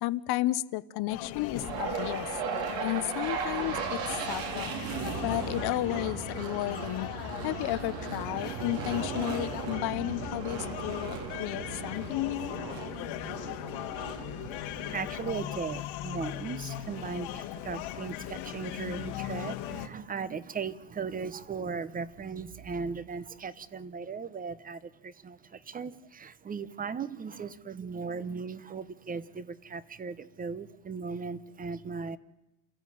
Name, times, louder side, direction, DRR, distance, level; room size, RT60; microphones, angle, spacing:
voice 1, 0.0-2.3 2.8-4.8 5.2-7.1 7.4-12.5, left 16 dB, 55° left, 15 dB, 0.9 m, -33 dB
sound 1, 1.1-19.9, left 13 dB, 80° left, 2.1 m, -39 dB
sound 2, 1.5-15.7, right 6 dB, 75° right, 3.7 m, -37 dB
voice 2, 14.4-32.2, right 5 dB, 20° right, 17 dB, 0.8 m, -37 dB
28.5 x 14.5 x 9.3 m, 0.91 s
cardioid pair, 150°, 47 cm